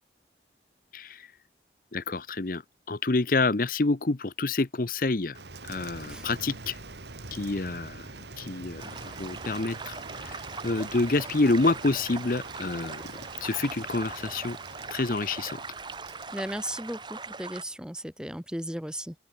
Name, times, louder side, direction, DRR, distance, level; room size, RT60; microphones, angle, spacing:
voice 1, 0.9-1.3 1.9-2.6 2.9-5.4 5.6-6.8 7.3-8.1 8.4-13.0 13.4-14.6 14.9-15.6, left 3 dB, 50° left, 0.8 m, -28 dB
Rain, 5.3-17.8, right 3 dB, 75° right, 2.8 m, -45 dB
sound 1, 8.8-17.6, right 4 dB, 25° right, 2.8 m, -40 dB
voice 2, 16.0-19.1, right 1 dB, 5° right, 1.7 m, -36 dB
open air
head